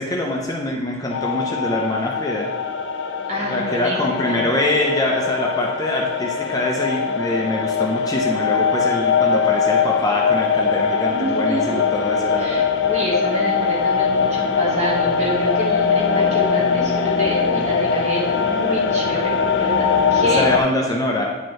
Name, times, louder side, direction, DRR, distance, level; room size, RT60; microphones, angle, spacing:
voice 1, 0.0-2.5 3.5-12.7 20.3-21.3, left 1 dB, 20° left, -1 dB, 0.6 m, -24 dB
sound 1, 1.1-20.6, left 6 dB, 65° left, 0.5 m, -21 dB
voice 2, 3.3-4.4 11.1-11.8 12.3-20.4, right 1 dB, 35° right, -3 dB, 1.5 m, -27 dB
9.1 x 4.4 x 3.2 m, 1.3 s
head